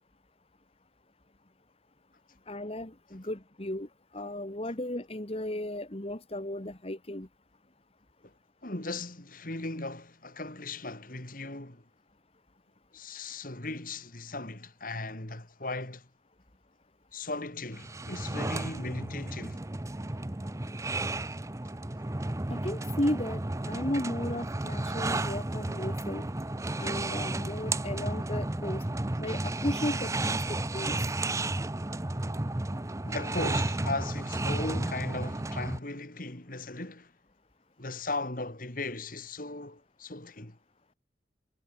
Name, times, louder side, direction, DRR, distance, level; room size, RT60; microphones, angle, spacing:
voice 1, 2.5-7.3 22.5-26.2 26.8-28.8 29.2-31.0, left 1 dB, 35° left, 2.1 m, -35 dB
voice 2, 8.6-11.8 12.9-16.1 17.1-19.6 27.7-27.8 33.0-37.1 37.8-40.6, left 2 dB, 50° left, 3.2 m, -37 dB
sound 1, 17.7-35.8, right 2 dB, 15° right, 0.7 m, -33 dB
head